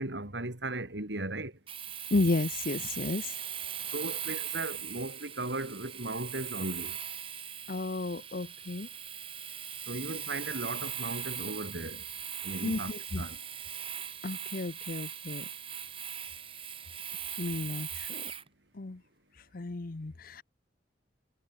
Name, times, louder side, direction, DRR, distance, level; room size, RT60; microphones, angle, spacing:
voice 1, 0.0-1.5 3.9-7.0 9.9-12.0 12.4-13.4, right 2 dB, 70° right, 3.6 m, -37 dB
Domestic sounds home sounds, 1.7-18.5, right 9 dB, 30° right, 3.1 m, -40 dB
voice 2, 2.1-3.4 7.7-8.9 12.6-13.2 14.2-15.5 17.4-18.3 18.7-19.0 19.5-20.4, left 2 dB, 50° left, 0.8 m, -33 dB
head